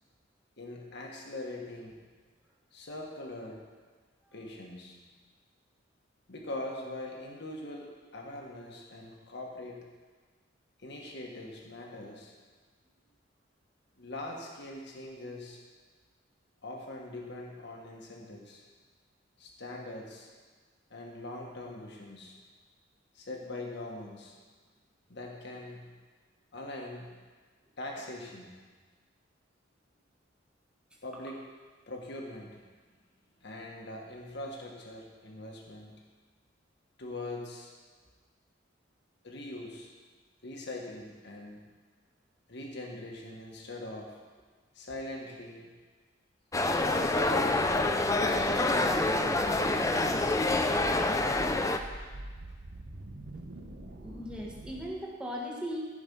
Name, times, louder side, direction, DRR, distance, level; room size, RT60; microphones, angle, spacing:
voice 1, 0.6-2.0 2.7-3.6 4.3-5.0 6.3-9.9 10.8-12.3 14.0-15.6 16.6-18.6 19.4-20.3 20.9-22.4 23.1-24.4 25.1-25.9 26.5-27.1 27.8-28.5 31.0-31.4 31.9-32.6 33.4-35.9 37.0-37.7 39.2-39.9 40.4-41.6 42.5-44.2 44.7-45.7 46.9-50.0, left 1 dB, 60° left, 0 dB, 1.5 m, -42 dB
sound 1, 46.5-51.8, left 2 dB, 15° left, 0.5 m, -27 dB
sound 2, 47.3-54.9, right 1 dB, 70° right, 1.0 m, -45 dB
voice 2, 53.9-55.8, equal, 5° right, -3 dB, 1.6 m, -38 dB
15.0 x 5.3 x 5.4 m, 1.4 s
head